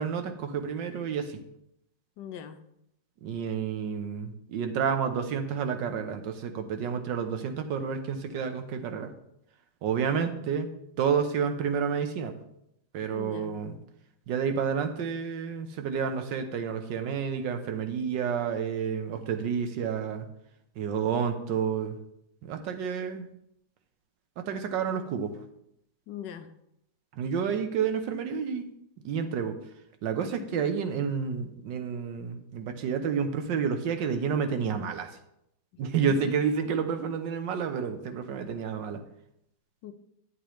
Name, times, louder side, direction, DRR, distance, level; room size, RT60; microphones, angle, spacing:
voice 1, 0.0-1.4 3.2-9.1 9.8-10.7 11.0-12.4 12.9-13.8 14.3-20.3 20.8-21.9 22.4-23.3 24.4-25.3 27.1-28.7 29.0-29.6 30.0-35.1 35.8-39.0, right 6 dB, 85° right, 7 dB, 1.5 m, -30 dB
voice 2, 2.2-2.6 10.1-10.3 13.1-13.6 26.1-26.5 30.4-30.5 35.7-35.8 36.2-36.3 39.8-39.9, left 9 dB, 80° left, 9 dB, 1.4 m, -42 dB
10.0 x 7.9 x 3.1 m, 0.78 s
omnidirectional pair, 1.9 m